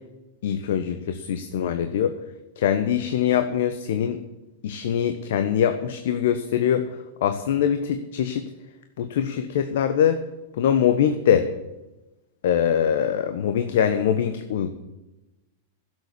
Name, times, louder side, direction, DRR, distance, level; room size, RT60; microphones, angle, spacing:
voice 1, 0.4-2.2 2.6-4.2 4.6-6.9 7.2-8.5 9.0-10.2 10.6-11.5 12.4-14.7, left 9 dB, 70° left, 8 dB, 1.2 m, -23 dB
12.0 x 7.9 x 9.9 m, 1.0 s
hypercardioid pair, 115°, 0 cm